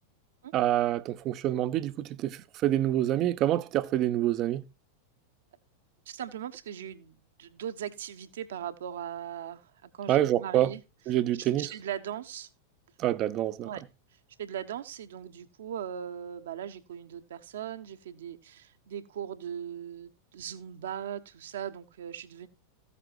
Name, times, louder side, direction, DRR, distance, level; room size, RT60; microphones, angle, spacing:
voice 1, 0.5-4.6 10.1-10.7 11.1-11.7 13.0-13.7, right 13 dB, 35° right, 0.9 m, -27 dB
voice 2, 6.1-10.8 11.4-12.5 13.6-13.8 14.4-22.5, right 9 dB, 60° right, 1.4 m, -39 dB
15.5 x 8.4 x 2.5 m
figure-of-eight pair, 90°, 0 cm